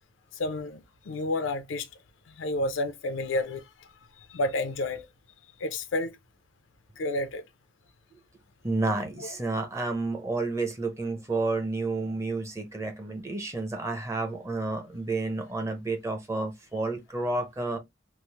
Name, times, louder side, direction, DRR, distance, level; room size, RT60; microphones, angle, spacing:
voice 1, 0.3-1.9 2.3-3.7 4.2-5.1 5.6-6.2 7.0-7.4 9.2-9.3, left 2 dB, 90° left, 0.5 m, -30 dB
voice 2, 8.6-17.8, right 3 dB, 15° right, 0.6 m, -30 dB
3.1 x 2.0 x 2.8 m
head